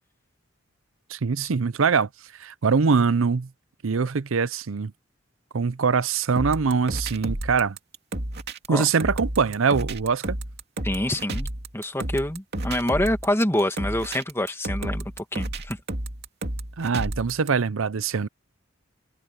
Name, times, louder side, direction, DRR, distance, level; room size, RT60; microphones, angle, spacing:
voice 1, 1.1-2.1 2.4-3.5 3.8-4.9 5.5-7.8 8.7-10.4 16.8-18.3, right 5 dB, 85° right, 0.6 m, -23 dB
sound 1, 6.4-17.5, right 1 dB, 55° right, 2.5 m, -31 dB
voice 2, 10.8-11.5 11.7-15.8, left 1 dB, 15° left, 2.1 m, -26 dB
head